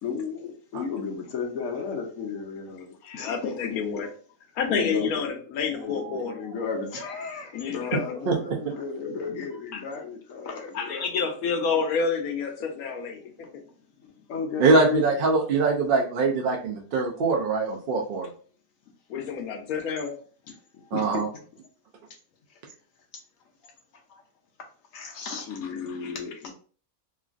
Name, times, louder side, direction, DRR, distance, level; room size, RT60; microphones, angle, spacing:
voice 1, 0.0-3.5 4.7-5.1 5.7-11.1 14.3-15.1 20.9-21.1 24.9-26.5, left 5 dB, 75° left, 1.0 m, -34 dB
voice 2, 3.0-4.1 4.6-6.4 7.5-8.2 9.7-9.8 10.7-13.5 19.1-20.1 25.6-26.5, left 5 dB, 90° left, 1.1 m, -29 dB
voice 3, 6.0-6.3 8.3-8.7 14.6-18.3 20.9-21.3, right 3 dB, 65° right, 0.5 m, -23 dB
3.0 x 2.5 x 2.4 m
omnidirectional pair, 1.5 m